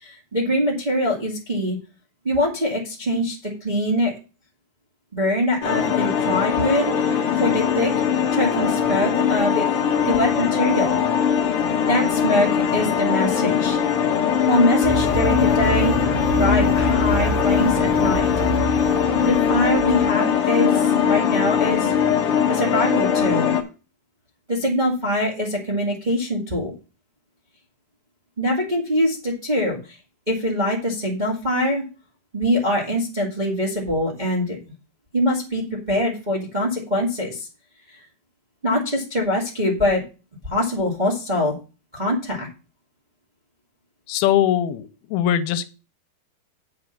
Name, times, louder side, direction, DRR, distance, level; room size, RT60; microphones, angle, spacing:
voice 1, 0.0-1.8 2.2-4.2 5.1-7.9 8.3-9.7 10.0-11.0 11.9-13.8 14.5-15.9 16.3-18.3 19.2-21.9 22.5-23.5 24.5-26.7 28.4-29.8 30.3-31.8 32.3-34.6 35.1-37.5 38.6-40.0 40.4-41.5 41.9-42.5, left 1 dB, 20° right, -3 dB, 1.3 m, -23 dB
sound 1, 5.6-23.6, left 8 dB, 65° left, 1.3 m, -21 dB
sound 2, 14.8-20.1, right 2 dB, 40° left, 2.3 m, -27 dB
voice 2, 44.1-45.7, left 10 dB, 85° left, 11 dB, 2.6 m, -21 dB
8.0 x 5.4 x 6.6 m, 0.32 s
omnidirectional pair, 4.4 m